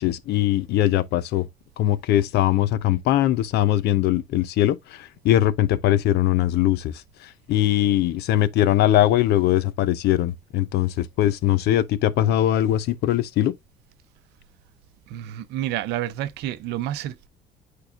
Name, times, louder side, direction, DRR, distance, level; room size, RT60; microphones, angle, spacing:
voice 1, 0.0-1.4 1.8-6.9 7.5-13.5, left 13 dB, 80° left, 0.6 m, -21 dB
voice 2, 15.1-17.3, right 12 dB, 90° right, 0.7 m, -29 dB
8.5 x 4.7 x 2.4 m
cardioid pair, 110°, 17 cm